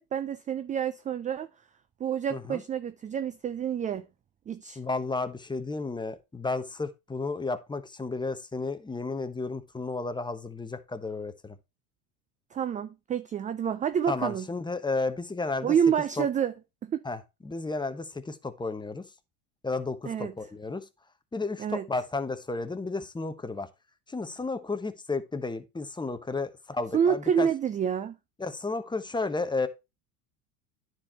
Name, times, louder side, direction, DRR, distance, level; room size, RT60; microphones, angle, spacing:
voice 1, 0.0-1.5 2.0-4.0 4.5-4.8 12.5-14.5 15.6-16.5 16.8-17.0 20.1-20.3 21.6-21.9 26.9-28.2, right 8 dB, 20° right, 0.3 m, -28 dB
voice 2, 2.3-2.6 4.8-11.6 14.1-15.7 16.2-16.3 17.0-17.2 17.4-19.1 19.6-20.8 21.3-23.7 24.1-27.5 28.4-29.7, left 3 dB, 10° left, 1.0 m, -32 dB
9.8 x 4.6 x 4.3 m
supercardioid pair, 95°, 45 cm